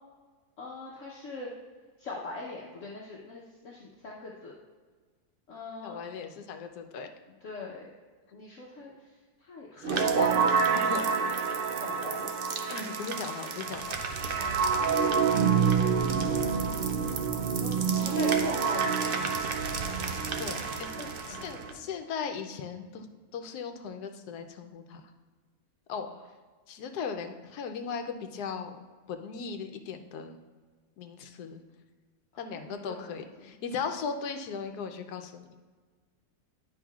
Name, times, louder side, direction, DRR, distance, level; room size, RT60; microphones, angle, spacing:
voice 1, 0.6-1.5 2.0-4.5 5.5-6.0 7.4-7.9 8.3-9.1 9.4-10.5 11.2-12.3 14.4-14.6 15.4-15.9 16.1-16.7 17.0-17.2 17.4-19.1 21.0-21.9 26.0-26.2 32.5-33.5, left 3 dB, 60° left, -3 dB, 1.1 m, -43 dB
voice 2, 5.8-7.1 9.8-11.0 11.3-11.5 12.7-14.0 20.4-20.9 21.3-23.1 23.3-25.0 25.9-26.1 26.7-28.8 29.1-30.4 31.0-31.6 32.4-35.5, left 6 dB, 85° left, 6 dB, 1.2 m, -37 dB
sound 1, 9.8-21.7, right 6 dB, 75° right, 0.5 m, -28 dB
10.0 x 5.4 x 2.3 m, 1.4 s
omnidirectional pair, 1.6 m